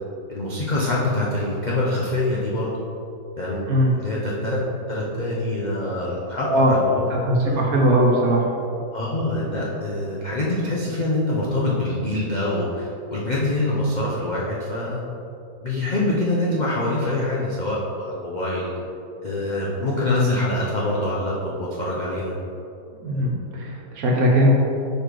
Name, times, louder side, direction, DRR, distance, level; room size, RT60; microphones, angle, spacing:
voice 1, 0.3-2.7 3.4-3.7 3.9-4.6 4.9-7.6 8.9-15.0 15.6-18.7 19.2-22.4 23.2-23.3, left 2 dB, 85° left, -6 dB, 0.4 m, -25 dB
voice 2, 6.3-6.7 7.1-8.5 23.0-24.6, equal, 60° right, -2 dB, 1.3 m, -19 dB
5.2 x 4.3 x 4.7 m, 2.6 s
omnidirectional pair, 1.9 m